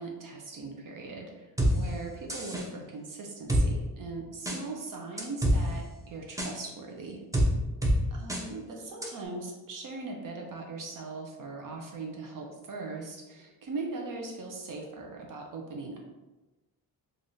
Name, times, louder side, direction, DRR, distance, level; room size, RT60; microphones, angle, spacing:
voice 1, 0.0-1.5 1.7-7.2 8.1-16.0, right 3 dB, 55° right, 1 dB, 0.6 m, -40 dB
sound 1, 1.6-1.7 2.3-2.6 3.5-3.6 4.5-4.6 5.2-5.6 6.4-6.5 7.3-7.5 7.8-8.0 8.3-8.4 9.0-9.1, right 1 dB, 10° right, 0.5 m, -25 dB
3.4 x 2.5 x 2.6 m, 1.1 s
cardioid pair, 110°, 39 cm